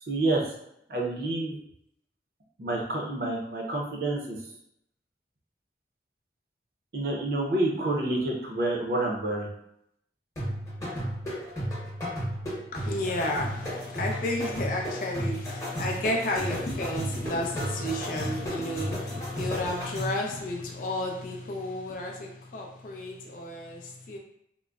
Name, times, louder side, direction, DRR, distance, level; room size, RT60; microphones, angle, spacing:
voice 1, 0.0-0.4 0.9-1.5 2.6-4.4 6.9-9.5, right 2 dB, 55° right, -1 dB, 0.6 m, -28 dB
sound 1, 10.4-20.3, equal, 20° left, 0.9 m, -34 dB
voice 2, 12.7-24.2, left 1 dB, 50° left, 1 dB, 0.4 m, -32 dB
3.7 x 2.0 x 2.3 m, 0.76 s
head